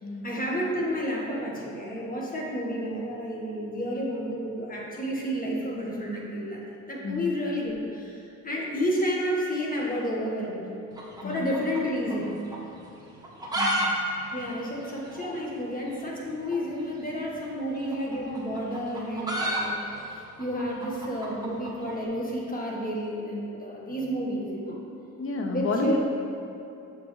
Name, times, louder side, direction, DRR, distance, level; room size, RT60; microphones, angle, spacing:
voice 1, 0.2-10.7 11.2-12.3 14.3-20.1 20.4-24.8 25.5-26.0, equal, 30° left, -3 dB, 1.5 m, -31 dB
sound 1, 10.9-12.3 12.5-12.6 13.1-13.9 14.1-14.2 14.5-14.6 15.1-15.3 16.4-16.6 17.7-22.0, right 1 dB, 15° right, 1.3 m, -30 dB
voice 2, 13.5-13.9 25.2-26.0, left 3 dB, 45° left, 2 dB, 0.9 m, -30 dB
7.0 x 6.3 x 3.2 m, 2.7 s
cardioid pair, 90°, 30 cm